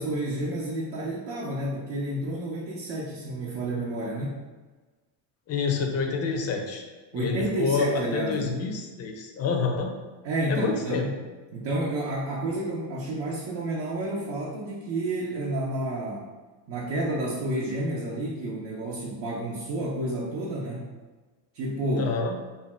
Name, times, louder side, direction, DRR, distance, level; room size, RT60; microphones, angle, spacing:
voice 1, 0.0-4.4 7.1-8.5 10.2-11.1 11.5-16.3 16.7-20.9 21.5-22.1, right 1 dB, 65° right, -4 dB, 0.6 m, -30 dB
voice 2, 5.5-6.8 7.1-9.9 10.5-11.1 22.0-22.4, left 5 dB, 35° left, 2 dB, 0.4 m, -28 dB
2.6 x 2.2 x 3.2 m, 1.3 s
cardioid pair, 115°, 48 cm